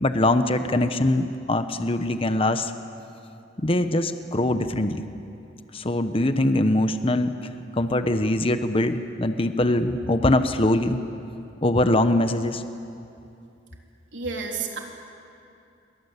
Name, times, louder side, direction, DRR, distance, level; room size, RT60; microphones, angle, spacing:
voice 1, 0.0-2.7 3.6-5.1 5.7-7.3 7.8-11.0 11.6-12.6, left 1 dB, 30° left, 9 dB, 1.0 m, -22 dB
voice 2, 14.1-14.8, right 4 dB, 85° right, 1 dB, 3.7 m, -30 dB
28.5 x 23.0 x 8.2 m, 2.6 s
head